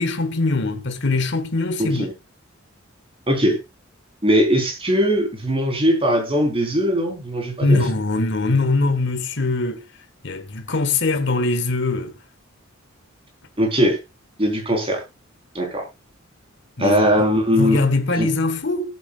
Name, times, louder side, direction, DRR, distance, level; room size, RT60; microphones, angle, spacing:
voice 1, 0.0-2.1 7.6-9.8 10.2-12.1 16.8-17.0 17.5-18.9, left 3 dB, 60° left, 1.3 m, -22 dB
voice 2, 1.8-2.1 3.3-3.6 4.2-7.8 13.6-14.0 14.4-15.0 15.5-15.8 16.8-17.8 18.2-18.3, equal, 25° right, 3.7 m, -20 dB
17.5 x 8.3 x 2.3 m
head